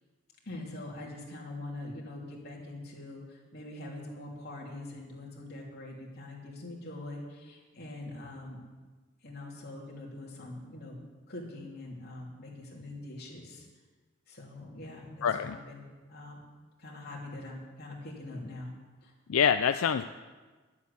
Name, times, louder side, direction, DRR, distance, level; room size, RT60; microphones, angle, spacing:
voice 1, 0.4-8.6 9.2-11.0 11.3-13.7 14.3-15.8 16.1-16.4 16.8-18.8 19.0-19.1, left 2 dB, 50° left, -3 dB, 3.1 m, -43 dB
voice 2, 15.2-15.6 19.3-20.0, left 7 dB, 85° left, 9 dB, 0.4 m, -25 dB
11.5 x 8.4 x 8.5 m, 1.3 s
head